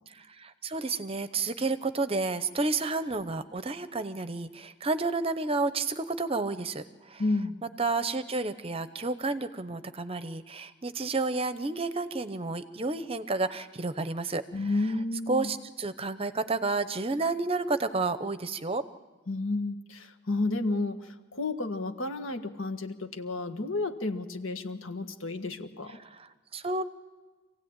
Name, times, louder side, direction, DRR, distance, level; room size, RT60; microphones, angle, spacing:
voice 1, 0.1-7.2 7.8-14.4 15.3-18.8 26.0-26.8, right 3 dB, 25° right, 12 dB, 0.8 m, -31 dB
voice 2, 7.2-7.6 14.5-15.5 19.3-26.0, left 2 dB, 70° left, 7 dB, 1.7 m, -31 dB
26.5 x 16.5 x 8.9 m, 1.3 s
head